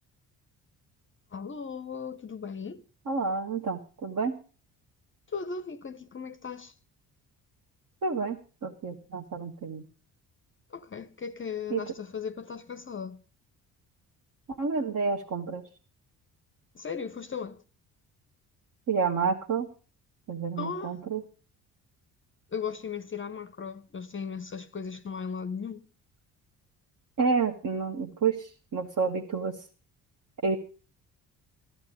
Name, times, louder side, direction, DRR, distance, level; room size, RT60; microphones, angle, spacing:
voice 1, 1.3-2.8 5.3-6.7 10.7-13.2 16.7-17.6 20.6-21.0 22.5-25.9, left 6 dB, 25° left, 0.7 m, -37 dB
voice 2, 3.1-4.4 8.0-9.8 11.7-11.8 14.5-15.6 18.9-19.7 20.3-21.2 27.2-29.6 30.4-30.6, right 5 dB, 40° right, 1.4 m, -29 dB
13.5 x 13.5 x 5.1 m
hypercardioid pair, 45°, 46 cm